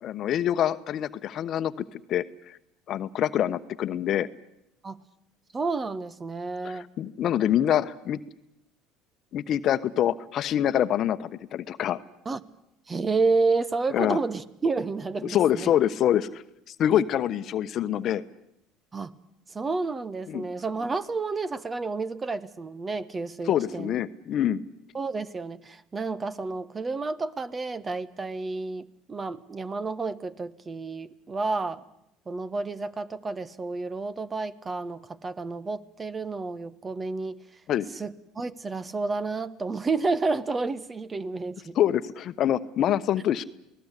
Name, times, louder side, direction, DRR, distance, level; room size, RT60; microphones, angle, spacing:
voice 1, 0.0-1.7 2.1-2.6 2.9-4.3 6.6-8.2 9.3-12.0 13.9-14.2 15.3-16.4 16.7-18.2 20.3-20.5 23.5-24.6 37.7-37.9 41.7-43.4, left 11 dB, 55° left, 13 dB, 1.1 m, -25 dB
voice 2, 5.5-6.9 12.2-12.5 12.9-15.7 18.9-19.1 19.5-23.9 24.9-31.8 32.3-37.4 38.0-41.8, right 3 dB, 25° right, 16 dB, 1.4 m, -30 dB
28.5 x 19.0 x 8.3 m, 0.82 s
hypercardioid pair, 80°, 0 cm